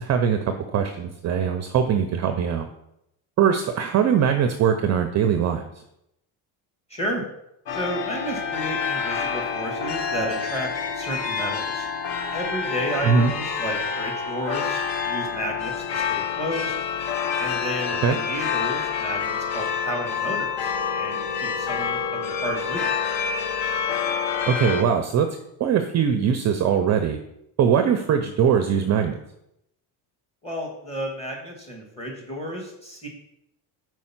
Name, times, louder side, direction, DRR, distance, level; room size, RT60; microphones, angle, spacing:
voice 1, 0.0-2.7 3.4-5.6 13.0-13.3 18.0-18.2 24.5-25.3 25.6-27.2 27.6-29.2, right 7 dB, 35° right, 7 dB, 0.5 m, -21 dB
voice 2, 6.9-7.2 7.7-11.9 12.3-16.8 17.4-22.9 30.4-33.1, equal, 15° left, -1 dB, 1.8 m, -32 dB
sound 1, 7.7-24.8, left 6 dB, 60° left, 0.9 m, -27 dB
5.3 x 4.6 x 5.8 m, 0.81 s
cardioid pair, 140°, 47 cm